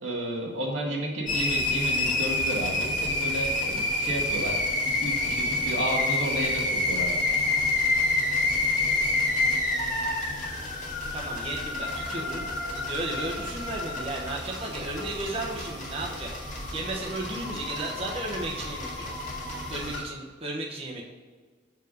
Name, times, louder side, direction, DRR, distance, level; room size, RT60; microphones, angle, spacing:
voice 1, 0.0-7.1, right 1 dB, 85° right, -2 dB, 1.9 m, -32 dB
sound 1, 1.3-20.0, left 2 dB, 40° left, 2.0 m, -28 dB
voice 2, 11.1-16.3 16.7-19.1 19.7-21.0, right 2 dB, 30° right, -3 dB, 1.0 m, -34 dB
6.9 x 4.7 x 6.3 m, 1.5 s
head